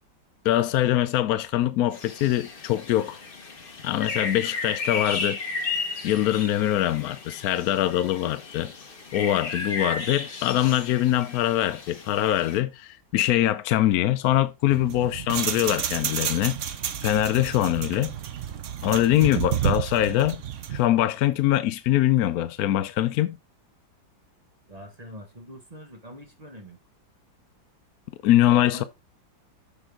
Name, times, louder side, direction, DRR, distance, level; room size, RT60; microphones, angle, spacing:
voice 1, 0.4-3.2 3.8-5.4 6.0-8.7 9.1-16.6 17.0-18.1 18.8-20.4 20.7-23.4 28.2-28.8, left 13 dB, 75° left, 0.8 m, -23 dB
sound 1, 1.9-12.6, left 4 dB, 35° left, 1.1 m, -34 dB
sound 2, 14.7-20.9, right 10 dB, 60° right, 0.8 m, -30 dB
voice 2, 24.7-26.8 28.7-28.8, equal, 20° right, 1.4 m, -44 dB
7.0 x 6.0 x 3.6 m
omnidirectional pair, 2.1 m